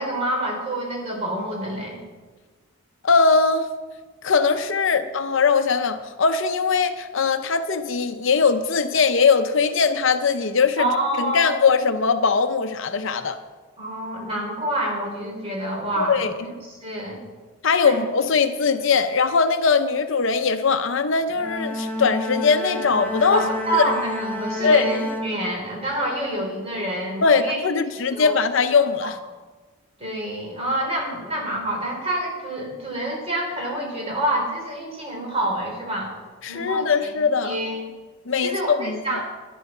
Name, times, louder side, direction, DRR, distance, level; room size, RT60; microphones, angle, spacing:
voice 1, 0.0-2.0 10.8-11.6 13.8-17.2 17.8-18.0 23.3-27.6 28.1-28.4 29.0-29.1 30.0-36.1 36.5-37.9 38.4-39.3, right 1 dB, 30° right, -1 dB, 3.6 m, -27 dB
voice 2, 3.0-3.7 4.2-10.9 11.2-13.4 16.0-16.3 17.6-23.5 23.7-23.8 24.6-24.9 27.2-29.2 36.4-37.6 38.3-39.2, left 5 dB, 60° left, 9 dB, 0.6 m, -20 dB
Bowed string instrument, 21.3-26.0, left 1 dB, 10° left, 1.0 m, -30 dB
12.0 x 11.0 x 5.4 m, 1.3 s
head